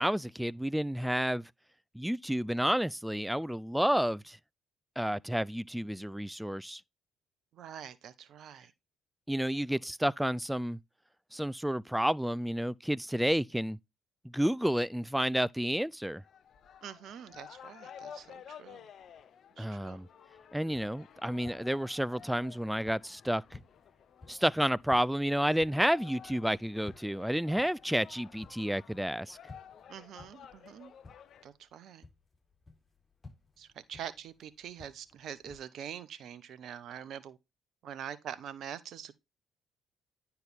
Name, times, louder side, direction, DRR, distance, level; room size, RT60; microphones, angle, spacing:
voice 1, 0.0-1.5 1.9-4.4 5.0-6.8 9.3-10.8 11.3-13.8 14.2-16.2 19.6-20.1 20.5-23.6 24.3-29.4, equal, 5° right, 0.4 m, -30 dB
voice 2, 7.5-8.7 9.7-10.1 16.8-18.8 19.6-20.0 29.9-30.9 31.4-32.0 33.6-37.4 37.8-39.2, right 9 dB, 60° right, 0.7 m, -45 dB
sound 1, 16.2-31.5, left 8 dB, 60° left, 0.7 m, -53 dB
sound 2, 20.3-31.7 32.0-35.6, left 3 dB, 25° left, 4.0 m, -56 dB
9.5 x 4.6 x 3.5 m
hypercardioid pair, 50°, 0 cm